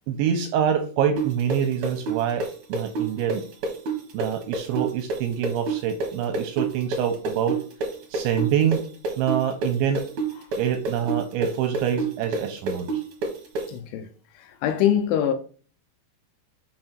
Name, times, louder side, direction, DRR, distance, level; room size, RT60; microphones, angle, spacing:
voice 1, 0.1-3.4 4.1-7.6 8.1-8.8 9.2-10.0 10.6-13.0, right 8 dB, 80° right, 2.8 m, -25 dB
sound 1, 1.2-8.8 9.0-13.6, right 4 dB, 65° right, 1.8 m, -27 dB
voice 2, 13.7-14.1 14.4-15.3, left 10 dB, 80° left, 2.9 m, -23 dB
6.6 x 6.1 x 4.4 m
omnidirectional pair, 5.9 m